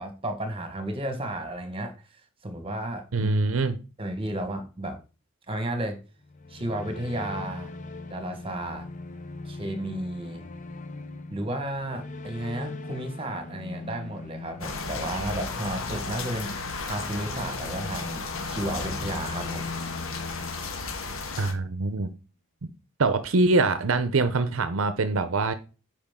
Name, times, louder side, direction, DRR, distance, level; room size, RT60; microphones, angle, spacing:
voice 1, 0.0-1.9 2.4-3.3 4.0-5.0 5.5-6.0 6.5-7.7 8.1-8.9 9.4-10.5 11.3-16.5 16.8-19.7, right 1 dB, 25° right, 1.4 m, -33 dB
voice 2, 3.1-3.8 21.4-22.1 23.0-25.5, right 3 dB, 75° right, 0.7 m, -24 dB
sound 1, 6.2-21.4, left 3 dB, 40° left, 0.7 m, -41 dB
sound 2, 14.6-21.5, left 3 dB, 75° left, 1.4 m, -34 dB
8.9 x 4.9 x 3.7 m
head